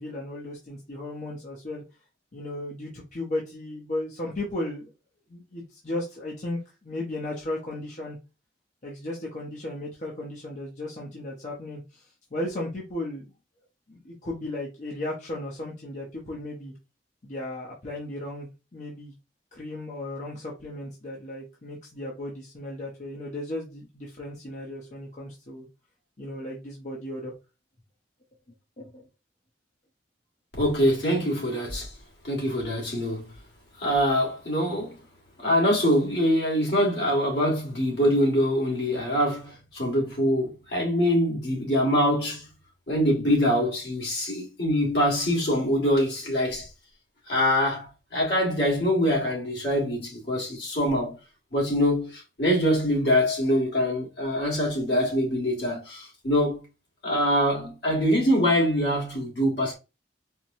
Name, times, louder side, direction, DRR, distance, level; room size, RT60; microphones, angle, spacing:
voice 1, 0.0-1.8 2.3-4.9 5.3-8.2 8.8-12.0 12.3-13.2 13.9-16.7 17.2-19.1 19.5-25.7 26.2-27.3 28.8-29.1, left 1 dB, 45° left, 0.8 m, -35 dB
voice 2, 30.6-31.9 32.2-33.3 33.8-34.9 35.4-42.5 42.9-46.7 47.3-51.2 51.5-56.6 57.0-59.7, equal, 70° left, 1.7 m, -24 dB
4.5 x 2.2 x 2.7 m
head